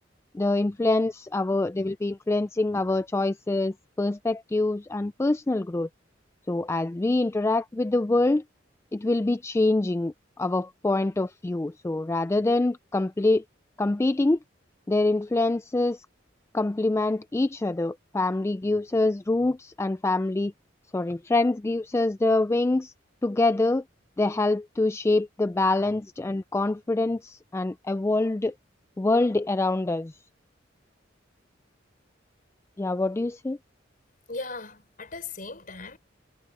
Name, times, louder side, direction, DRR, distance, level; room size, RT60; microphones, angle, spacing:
voice 1, 0.3-5.9 6.5-8.4 8.9-13.4 13.8-14.4 14.9-16.1 16.5-20.5 20.9-22.9 23.2-23.8 24.2-28.5 29.0-30.1 32.8-33.6, left 2 dB, 15° left, 0.3 m, -25 dB
voice 2, 34.3-36.0, left 3 dB, 50° left, 5.3 m, -38 dB
head